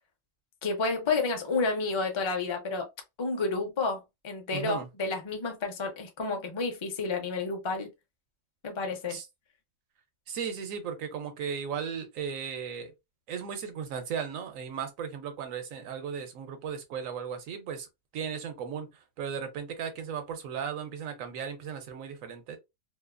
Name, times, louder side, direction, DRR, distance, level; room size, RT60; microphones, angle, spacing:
voice 1, 0.6-2.9 3.2-7.9 8.6-9.2, left 3 dB, 50° left, 0.3 m, -30 dB
voice 2, 4.5-4.9 9.1-9.3 10.3-12.9 13.3-17.9 18.1-22.6, right 7 dB, 80° right, 1.1 m, -36 dB
2.7 x 2.4 x 2.2 m
omnidirectional pair, 1.4 m